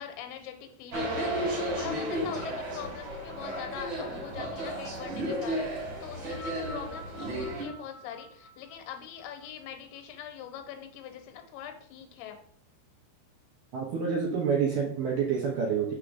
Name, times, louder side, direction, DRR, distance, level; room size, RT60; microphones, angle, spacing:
voice 1, 0.0-12.4, left 9 dB, 85° left, 6 dB, 3.0 m, -43 dB
sound 1, 0.9-7.6, right 1 dB, 50° right, 3.2 m, -33 dB
sound 2, 6.3-10.7 11.6-11.7, right 1 dB, 20° left, 1.0 m, -48 dB
voice 2, 13.7-15.9, right 6 dB, 70° right, -2 dB, 2.0 m, -28 dB
6.4 x 3.7 x 6.1 m, 0.62 s
omnidirectional pair, 5.2 m